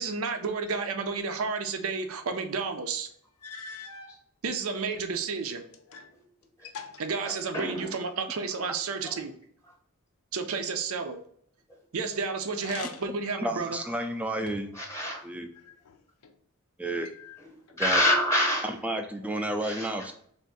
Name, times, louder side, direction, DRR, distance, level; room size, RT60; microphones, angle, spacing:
voice 1, 0.0-3.1 4.4-5.6 7.0-9.3 10.3-11.2 11.9-13.8, right 4 dB, 75° right, 7 dB, 0.5 m, -31 dB
sound 1, 2.8-2.9 3.4-4.2 4.9-6.2 6.4-8.0 12.5-13.3 13.8-14.8 15.5-16.3 17.0-17.8, left 5 dB, 90° left, 0.5 m, -45 dB
voice 2, 7.3-7.9 9.0-9.1 14.7-15.2 17.8-18.7 19.6-19.9, left 1 dB, 15° left, -1 dB, 0.9 m, -27 dB
voice 3, 13.4-14.7 15.2-15.5 16.8-17.1 17.7-18.0 18.6-20.1, right 1 dB, 5° right, 5 dB, 0.3 m, -31 dB
3.5 x 2.5 x 3.9 m, 0.62 s
head